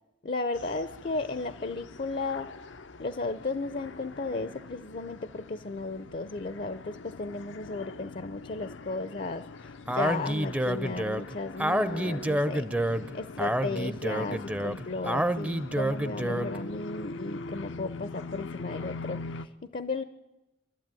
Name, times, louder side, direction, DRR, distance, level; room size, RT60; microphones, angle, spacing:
voice 1, 0.2-2.5 3.0-12.7 13.1-20.0, left 3 dB, 45° left, 13 dB, 0.7 m, -35 dB
sound 1, 0.5-19.5, left 3 dB, 80° left, 0.7 m, -43 dB
Speech, 9.9-16.6, right 1 dB, 10° right, 0.6 m, -29 dB
25.5 x 12.5 x 9.1 m, 1.0 s
head